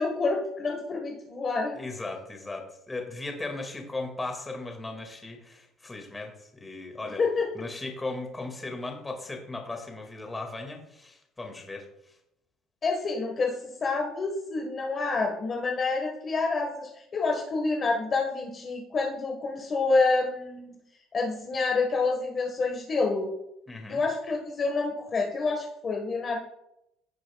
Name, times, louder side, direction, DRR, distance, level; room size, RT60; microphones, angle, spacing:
voice 1, 0.0-1.8 7.2-7.5 12.8-20.7 21.1-23.3 23.9-26.4, left 3 dB, 30° left, 1 dB, 1.4 m, -28 dB
voice 2, 1.7-7.2 7.5-12.2 23.7-24.0, left 2 dB, 15° left, 2 dB, 2.0 m, -37 dB
16.0 x 7.4 x 2.3 m, 0.83 s
cardioid pair, 130°, 0 cm